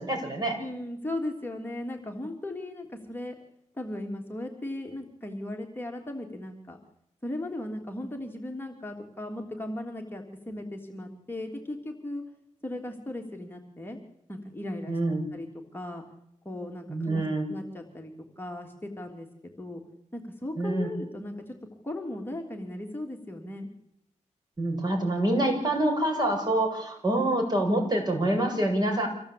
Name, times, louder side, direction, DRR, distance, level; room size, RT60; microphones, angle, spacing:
voice 1, 0.0-0.6 14.9-15.2 16.9-17.4 20.6-20.9 24.6-29.1, right 1 dB, 35° right, 3 dB, 7.0 m, -26 dB
voice 2, 0.6-3.3 3.7-6.8 7.2-12.2 12.6-14.0 14.3-15.0 15.3-15.5 15.7-16.0 16.4-19.8 20.1-23.7, left 1 dB, 15° left, 2 dB, 3.2 m, -37 dB
26.0 x 17.5 x 8.6 m, 0.78 s
wide cardioid pair, 95°, 13 cm